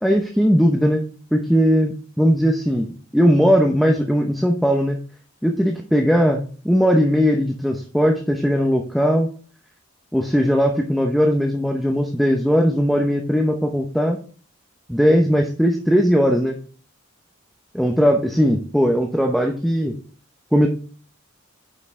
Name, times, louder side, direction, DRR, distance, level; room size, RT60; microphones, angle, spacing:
voice 1, 0.0-1.1 1.3-5.0 5.4-9.3 10.1-14.2 14.9-16.6 17.7-20.0 20.5-20.7, equal, ahead, 2 dB, 0.6 m, -18 dB
9.6 x 5.3 x 3.6 m, 0.41 s
head